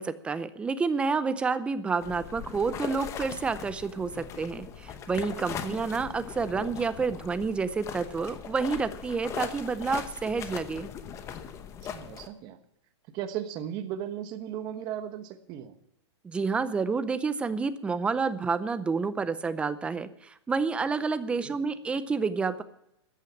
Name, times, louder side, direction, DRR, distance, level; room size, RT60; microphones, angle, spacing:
voice 1, 0.0-10.9 16.2-22.6, right 4 dB, 5° right, 0.5 m, -29 dB
sound 1, 2.0-12.3, left 8 dB, 20° left, 0.9 m, -40 dB
voice 2, 11.8-12.6 13.1-15.8 21.4-21.6, right 10 dB, 30° right, 1.2 m, -36 dB
14.0 x 8.9 x 7.3 m
hypercardioid pair, 155°, 15 cm